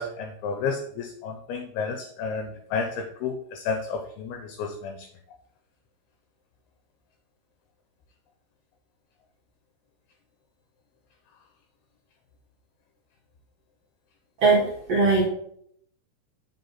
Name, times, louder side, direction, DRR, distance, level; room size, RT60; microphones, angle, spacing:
voice 1, 0.0-5.0, left 5 dB, 80° left, 5 dB, 2.4 m, -31 dB
voice 2, 14.4-15.3, right 3 dB, 80° right, -4 dB, 1.4 m, -20 dB
8.0 x 5.2 x 4.2 m, 0.67 s
omnidirectional pair, 5.1 m